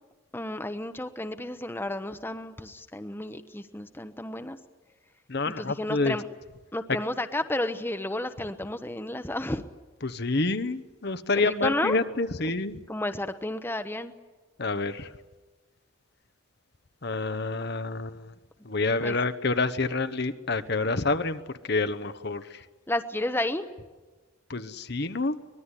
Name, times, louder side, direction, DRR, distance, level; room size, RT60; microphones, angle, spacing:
voice 1, 0.3-4.6 5.6-6.3 6.7-9.6 11.6-12.0 12.4-12.5 12.9-14.1 19.0-19.1 22.9-23.6, left 1 dB, 10° left, 8 dB, 0.9 m, -31 dB
voice 2, 5.3-6.2 6.9-7.0 10.0-12.8 14.6-15.1 17.0-18.3 18.6-22.6 24.5-25.4, left 3 dB, 55° left, 10 dB, 1.1 m, -28 dB
24.0 x 20.5 x 9.9 m, 1.2 s
head